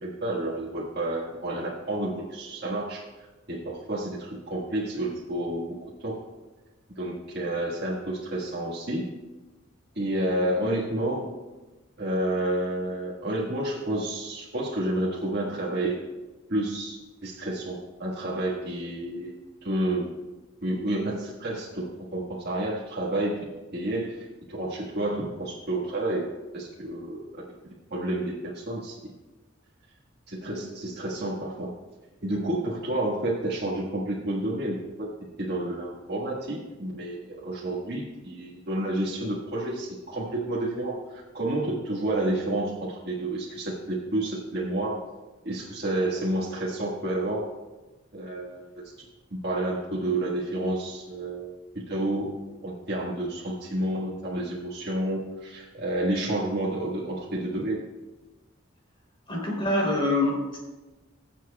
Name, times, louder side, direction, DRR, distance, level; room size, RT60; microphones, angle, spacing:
voice 1, 0.0-3.0 3.5-5.7 6.0-6.2 7.0-9.1 9.9-11.3 12.0-16.0 16.5-19.3 19.6-20.1 20.6-23.4 23.7-27.2 27.9-29.1 30.3-31.7 32.2-35.1 35.4-45.0 45.4-47.5 48.1-48.6 49.4-51.5 51.9-57.8, right 1 dB, 55° right, -6 dB, 1.7 m, -30 dB
voice 2, 59.3-60.6, left 1 dB, 25° left, -2 dB, 3.2 m, -25 dB
22.0 x 7.6 x 2.3 m, 1.2 s
head